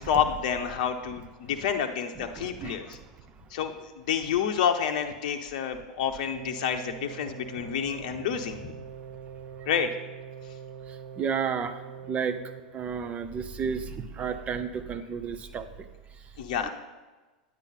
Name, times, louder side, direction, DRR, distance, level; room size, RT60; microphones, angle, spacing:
voice 1, 0.0-2.8 3.5-8.7 9.7-9.9 16.4-16.7, left 8 dB, 60° left, 5 dB, 0.7 m, -29 dB
voice 2, 2.2-3.5 5.7-5.8 7.6-7.7 8.9-9.8 10.7-16.7, right 6 dB, 30° right, 10 dB, 0.8 m, -34 dB
sound 1, 6.3-12.6, right 7 dB, 70° right, 0.7 m, -43 dB
9.7 x 8.8 x 4.2 m, 1.2 s
hypercardioid pair, 95°, 5 cm